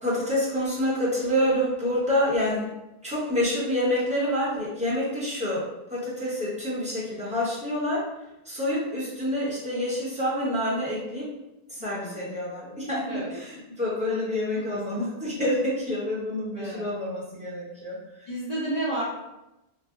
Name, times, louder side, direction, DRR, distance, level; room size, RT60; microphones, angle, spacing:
voice 1, 0.0-2.7 3.0-8.1 8.4-11.3 11.7-18.3, left 1 dB, 10° right, -7 dB, 0.8 m, -27 dB
voice 2, 11.8-12.4 13.1-13.3 16.6-16.9 18.3-19.0, right 1 dB, 45° left, -9 dB, 0.7 m, -31 dB
2.4 x 2.0 x 3.6 m, 0.94 s
omnidirectional pair, 1.0 m